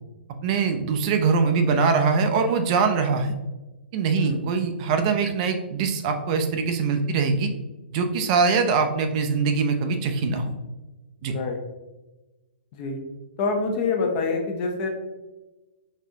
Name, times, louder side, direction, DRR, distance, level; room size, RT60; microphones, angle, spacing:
voice 1, 0.4-3.3 3.9-7.5 7.9-10.5 11.2-11.3, right 5 dB, 35° right, 6 dB, 0.5 m, -22 dB
voice 2, 11.2-11.6 12.7-13.0 13.4-14.9, left 4 dB, 40° left, 2 dB, 0.8 m, -26 dB
4.1 x 3.6 x 2.7 m, 1.1 s
hypercardioid pair, 135°, 6 cm